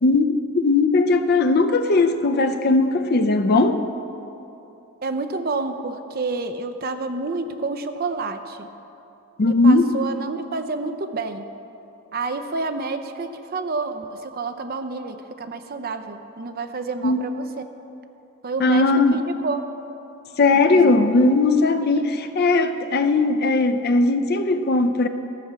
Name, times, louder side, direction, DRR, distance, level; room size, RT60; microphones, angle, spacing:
voice 1, 0.0-3.8 9.4-9.9 17.0-17.2 18.6-19.2 20.4-25.1, left 3 dB, 45° left, 8 dB, 0.5 m, -18 dB
voice 2, 5.0-8.7 9.4-11.5 12.1-17.5 18.4-19.6 20.5-20.9, right 3 dB, 40° right, 8 dB, 0.5 m, -29 dB
14.0 x 4.7 x 6.8 m, 2.9 s
head